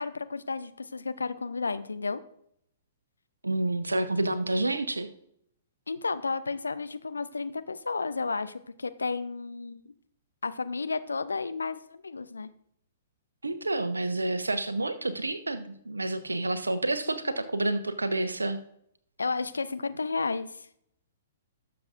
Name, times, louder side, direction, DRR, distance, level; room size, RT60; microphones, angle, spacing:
voice 1, 0.0-2.2 5.9-9.8 10.4-12.5 19.2-20.7, left 4 dB, 75° left, 12 dB, 0.7 m, -32 dB
voice 2, 3.4-5.1 13.4-18.6, right 2 dB, 80° right, 11 dB, 0.9 m, -29 dB
18.5 x 7.0 x 2.5 m, 0.71 s
figure-of-eight pair, 115°, 0 cm